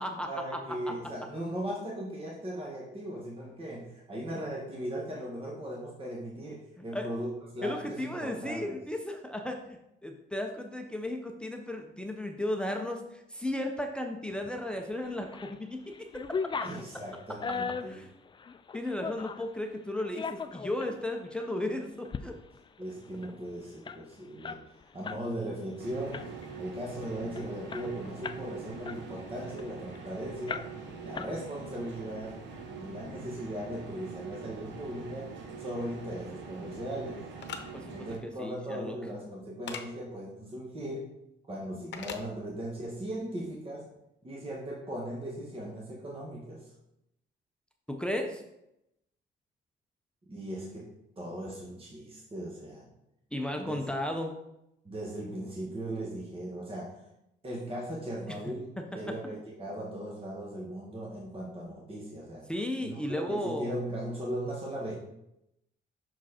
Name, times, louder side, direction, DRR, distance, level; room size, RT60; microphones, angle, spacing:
voice 1, 0.3-8.8 16.6-18.0 22.8-24.6 24.9-30.7 31.0-32.4 32.8-37.2 37.9-41.1 41.5-43.9 44.2-46.7 50.3-52.9 53.6-53.8 54.8-57.0 57.4-62.5 62.8-65.0, right 1 dB, 30° right, -3 dB, 1.5 m, -38 dB
voice 2, 6.8-7.1 7.6-15.8 16.1-16.4 17.9-18.1 18.7-22.4 37.7-37.8 38.2-39.0 47.9-48.4 53.3-54.4 58.3-58.4 62.5-63.7, left 1 dB, 5° left, 3 dB, 0.7 m, -35 dB
sound 1, 15.0-15.6 15.9-19.5 20.0-20.9 21.4-21.5 21.9-22.2 22.5-22.6 22.9-25.2 25.6-25.8 26.1-26.6 27.0-27.1 27.4-28.5 28.8-30.0 30.5-30.9 31.1-31.8, left 5 dB, 25° left, 0.3 m, -38 dB
sound 2, 25.8-38.2, right 5 dB, 70° right, 1.1 m, -44 dB
sound 3, 37.4-37.6 39.7-39.8 41.9-42.2, left 6 dB, 65° left, 0.8 m, -38 dB
6.1 x 4.6 x 4.3 m, 0.83 s
cardioid pair, 90°, 20 cm